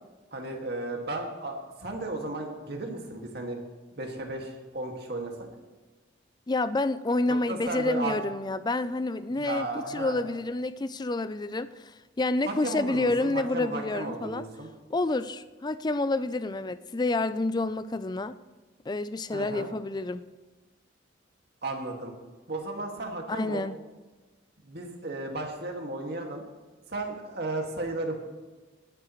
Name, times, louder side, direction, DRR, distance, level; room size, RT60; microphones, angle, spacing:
voice 1, 0.3-3.6 4.0-5.5 7.3-8.2 9.4-10.2 12.5-14.7 19.3-19.7 21.6-22.1 22.5-23.6 24.6-26.4 26.9-28.2, right 2 dB, 55° right, 1 dB, 2.1 m, -34 dB
voice 2, 6.5-14.4 14.9-18.4 18.9-20.2 23.3-23.8, left 2 dB, 20° left, 14 dB, 0.4 m, -29 dB
19.0 x 11.5 x 3.2 m, 1.2 s
head